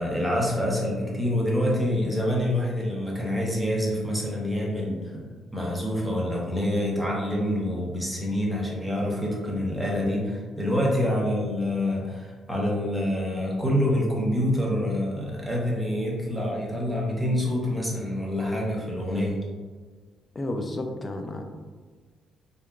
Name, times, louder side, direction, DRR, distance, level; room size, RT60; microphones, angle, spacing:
voice 1, 0.0-5.2 5.5-19.4, left 1 dB, 5° right, -4 dB, 0.7 m, -26 dB
voice 2, 20.4-21.4, left 1 dB, 30° left, 5 dB, 0.3 m, -31 dB
2.7 x 2.2 x 2.3 m, 1.4 s
cardioid pair, 90°, 0 cm